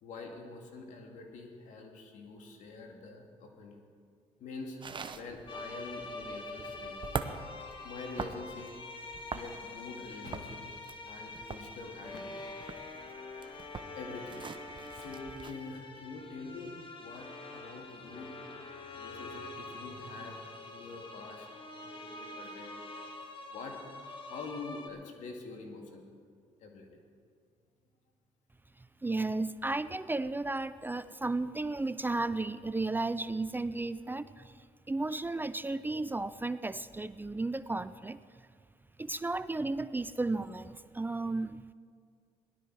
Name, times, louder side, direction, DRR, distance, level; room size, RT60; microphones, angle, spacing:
voice 1, 0.0-3.8 4.4-7.3 7.8-8.7 9.3-10.7 11.1-12.4 13.9-14.5 14.9-18.4 18.9-22.8 23.2-23.8 24.3-26.1 26.6-27.0, left 3 dB, 70° left, 2 dB, 2.3 m, -46 dB
sound 1, 4.8-15.5, right 5 dB, 40° right, 0.9 m, -43 dB
sound 2, 5.5-24.9, left 2 dB, 40° left, 1.9 m, -45 dB
voice 2, 29.0-34.5 34.9-38.2 39.0-41.7, right 2 dB, 15° right, 14 dB, 0.5 m, -34 dB
17.0 x 12.0 x 4.7 m, 2.1 s
supercardioid pair, 65°, 13 cm